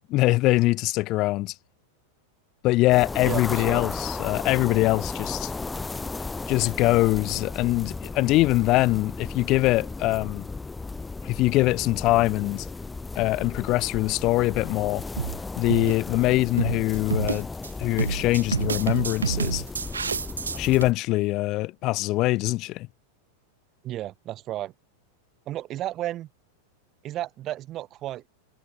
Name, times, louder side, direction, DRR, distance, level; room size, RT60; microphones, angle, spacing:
voice 1, 0.1-1.5 2.6-5.5 6.5-10.4 11.2-12.7 13.2-15.0 15.5-17.5 17.8-19.6 20.5-22.9, left 19 dB, 40° left, 0.5 m, -23 dB
sound 1, 2.9-20.9, left 3 dB, 10° left, 1.5 m, -35 dB
voice 2, 3.2-3.9 23.8-24.7 25.5-26.3 27.0-28.2, right 13 dB, 35° right, 0.8 m, -33 dB
sound 2, 14.2-14.5 15.2-15.4 15.7-16.0 16.6-16.8 17.1-17.7 18.0-20.8, right 6 dB, 75° right, 0.4 m, -28 dB
figure-of-eight pair, 90°, 0 cm